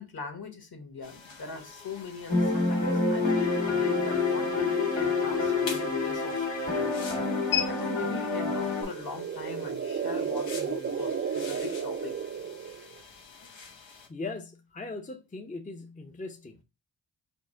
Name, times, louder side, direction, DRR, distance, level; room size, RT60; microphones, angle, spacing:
voice 1, 0.0-6.9 7.7-12.2, left 4 dB, 55° left, 1.4 m, -41 dB
sound 1, 1.0-14.1, left 8 dB, 90° left, 1.1 m, -42 dB
sound 2, 2.3-8.8, left 3 dB, 70° left, 1.8 m, -27 dB
sound 3, 8.6-13.0, right 7 dB, 30° right, 0.4 m, -33 dB
voice 2, 13.8-16.6, left 3 dB, 15° left, 0.6 m, -39 dB
4.4 x 2.1 x 4.3 m
cardioid pair, 40°, 45 cm